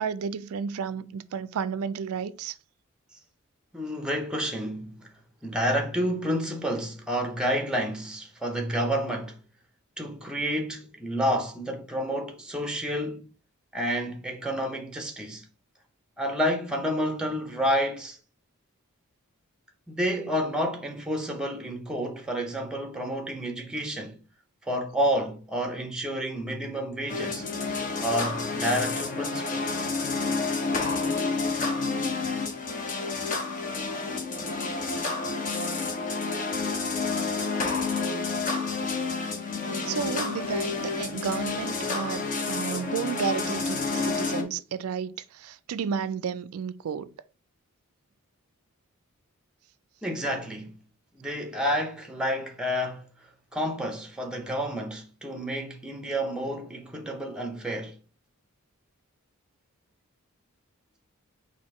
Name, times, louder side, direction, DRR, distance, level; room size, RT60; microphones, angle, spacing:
voice 1, 0.0-2.6 39.9-47.1, right 6 dB, 75° right, 0.4 m, -32 dB
voice 2, 3.7-5.1 5.4-9.4 10.0-13.2 13.7-15.4 16.2-18.2 19.9-24.2 24.6-27.4 28.0-29.9 50.0-50.7 51.1-53.1 53.5-57.9, equal, 5° right, 0.7 m, -29 dB
sound 1, 27.1-44.4, left 4 dB, 35° left, 0.8 m, -29 dB
4.3 x 2.7 x 4.2 m
head